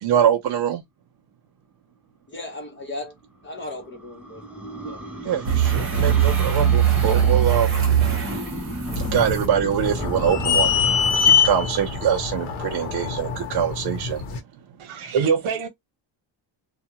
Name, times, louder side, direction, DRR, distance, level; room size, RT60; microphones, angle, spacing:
voice 1, 0.0-0.8 5.2-7.7 9.0-14.2, right 8 dB, 60° right, 0.6 m, -24 dB
voice 2, 2.3-3.1 3.4-4.5 4.8-5.0 5.5-5.7, left 2 dB, 25° left, 0.7 m, -36 dB
sound 1, 3.2-12.8, equal, 5° right, 0.4 m, -35 dB
sound 2, 5.4-9.4 11.1-11.2, right 9 dB, 30° right, 0.9 m, -21 dB
sound 3, 8.9-14.4, left 6 dB, 90° left, 1.0 m, -24 dB
voice 3, 14.8-15.7, right 6 dB, 80° right, 1.0 m, -23 dB
2.3 x 2.2 x 2.8 m
cardioid pair, 175°, 47 cm